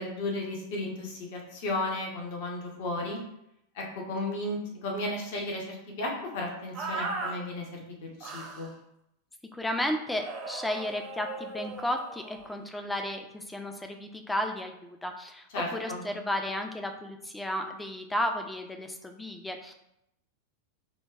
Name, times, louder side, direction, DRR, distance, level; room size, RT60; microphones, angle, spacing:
voice 1, 0.0-3.2 3.7-8.7 15.5-16.0, left 2 dB, 50° left, -1 dB, 0.8 m, -34 dB
sound 1, 6.7-7.4 8.2-8.7 10.2-12.5, right 3 dB, 35° right, 0.6 m, -37 dB
voice 2, 9.5-19.7, left 1 dB, 5° left, 4 dB, 0.4 m, -33 dB
5.1 x 2.2 x 2.3 m, 0.81 s
figure-of-eight pair, 90°, 0 cm